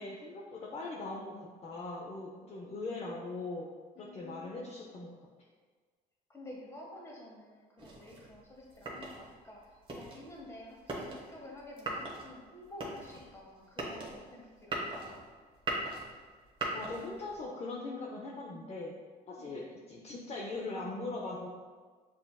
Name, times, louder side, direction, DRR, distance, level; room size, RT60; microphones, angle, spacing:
voice 1, 0.0-3.7 4.0-5.2 16.7-18.9 19.3-21.5, left 2 dB, 40° left, -2 dB, 0.5 m, -40 dB
voice 2, 2.4-3.1 3.9-4.7 6.3-15.2 19.4-19.6, left 1 dB, 15° left, -2 dB, 1.1 m, -50 dB
sound 1, 7.8-17.4, right 2 dB, 30° right, 1.0 m, -41 dB
7.0 x 2.7 x 2.3 m, 1.5 s
cardioid pair, 110°, 17 cm